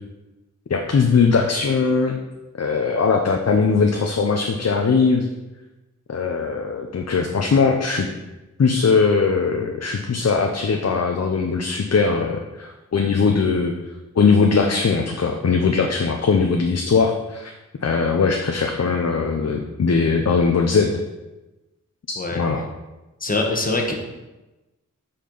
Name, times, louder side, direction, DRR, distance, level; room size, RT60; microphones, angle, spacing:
voice 1, 0.7-2.2 2.6-5.3 6.1-8.1 8.6-13.7 14.1-17.5 17.8-21.0 22.3-22.6, left 5 dB, 55° left, 2 dB, 0.7 m, -20 dB
voice 2, 23.2-23.9, left 2 dB, 25° left, 1 dB, 1.2 m, -23 dB
7.6 x 4.4 x 5.3 m, 1.1 s
wide cardioid pair, 100°, 32 cm